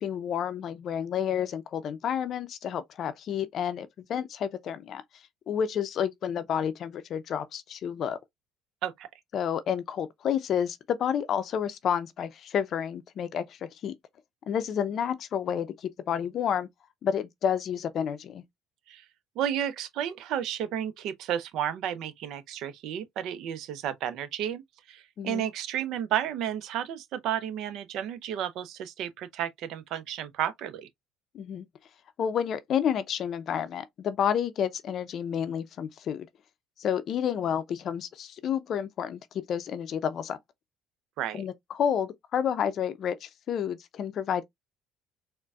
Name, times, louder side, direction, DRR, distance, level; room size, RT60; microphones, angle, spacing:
voice 1, 0.0-5.0 5.5-8.2 9.3-13.9 14.5-16.7 17.0-18.4 25.2-25.5 31.3-31.7 32.2-36.3 36.8-40.4 41.3-44.4, left 8 dB, 55° left, 0.5 m, -30 dB
voice 2, 19.4-24.6 24.9-30.9 41.2-41.4, right 10 dB, 65° right, 0.5 m, -32 dB
4.0 x 2.1 x 2.3 m
hypercardioid pair, 65°, 0 cm